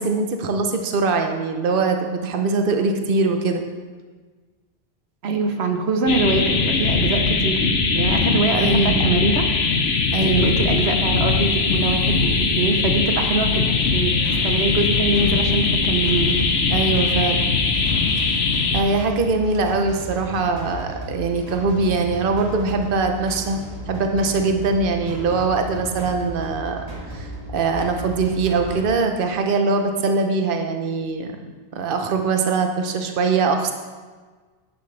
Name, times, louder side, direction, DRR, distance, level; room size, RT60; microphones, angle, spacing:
voice 1, 0.0-3.6 8.6-9.1 10.1-10.5 16.7-17.5 18.2-18.4 18.7-23.6 23.9-26.8 27.1-31.4 31.7-33.7, right 4 dB, 60° right, 5 dB, 1.0 m, -22 dB
voice 2, 5.2-9.5 10.2-14.1 14.4-16.3, right 3 dB, 80° right, 5 dB, 1.1 m, -23 dB
sound 1, 6.1-18.8, left 4 dB, 80° left, 1.2 m, -20 dB
sound 2, 13.8-28.8, right 1 dB, 35° right, 2.9 m, -34 dB
10.5 x 10.5 x 3.3 m, 1.4 s
omnidirectional pair, 1.1 m